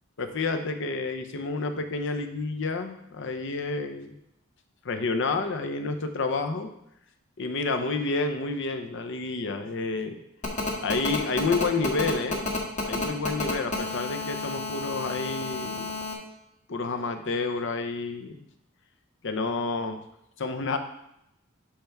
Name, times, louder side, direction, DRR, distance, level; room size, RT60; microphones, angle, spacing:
voice 1, 0.2-4.2 4.8-6.7 7.4-10.2 10.8-12.5 12.8-16.0 16.7-18.4 19.2-20.0 20.4-20.8, left 3 dB, 65° left, 7 dB, 0.8 m, -29 dB
Telephone, 10.4-16.1, left 3 dB, 35° left, 1.4 m, -31 dB
8.5 x 3.5 x 5.8 m, 0.80 s
head